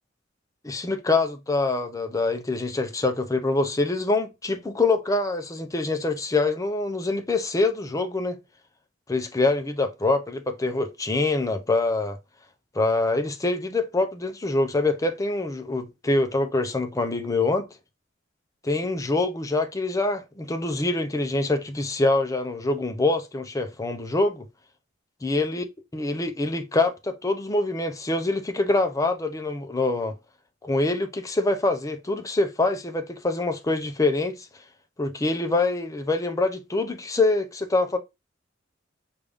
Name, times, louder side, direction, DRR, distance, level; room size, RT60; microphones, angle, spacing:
voice 1, 0.6-8.4 9.1-12.2 12.7-17.7 18.6-24.5 25.2-25.6 25.9-30.1 30.6-34.5 35.0-38.0, left 2 dB, 15° left, 0.5 m, -25 dB
5.3 x 2.5 x 3.4 m
head